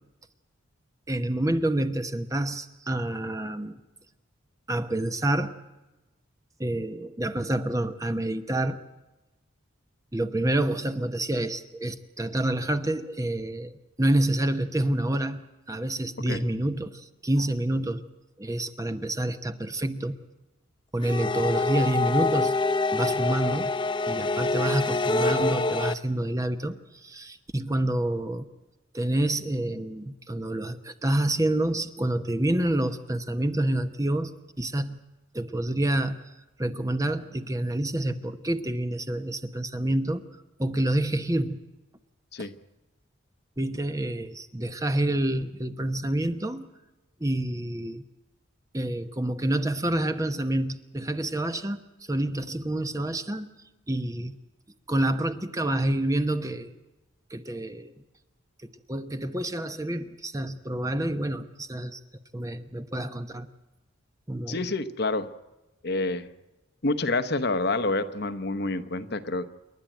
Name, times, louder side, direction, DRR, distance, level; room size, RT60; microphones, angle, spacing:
voice 1, 1.1-3.8 4.7-5.5 6.6-8.8 10.1-13.7 14.0-18.0 18.4-20.2 20.9-22.5 22.9-23.7 24.1-28.4 28.9-34.3 34.6-35.0 35.3-36.2 36.6-40.2 40.6-41.6 43.6-46.7 47.2-48.0 48.7-51.8 52.1-53.5 53.9-54.3 54.9-56.7 57.3-57.9 58.9-62.0 62.3-63.5 64.3-64.6, right 1 dB, 15° right, 9 dB, 0.9 m, -28 dB
sound 1, 21.0-25.9, left 3 dB, 25° left, 0.7 m, -26 dB
voice 2, 64.5-65.3 65.8-66.3 66.8-69.5, left 2 dB, 50° left, 11 dB, 1.0 m, -28 dB
28.5 x 11.5 x 9.1 m, 1.1 s
head